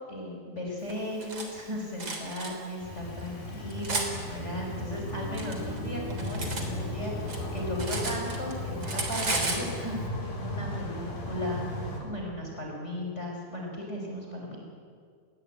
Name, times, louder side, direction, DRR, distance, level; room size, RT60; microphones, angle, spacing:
voice 1, 0.1-9.9 10.4-14.6, left 1 dB, 15° left, -1 dB, 5.3 m, -36 dB
Cutlery silverware, 0.9-1.5 2.0-2.5 3.2-4.1 5.0-6.7 7.0-8.5 8.8-9.7, right 3 dB, 30° right, 3.9 m, -33 dB
sound 1, 2.8-12.0, left 1 dB, 65° left, 6.0 m, -36 dB
30.0 x 21.0 x 9.1 m, 2.1 s
omnidirectional pair, 4.3 m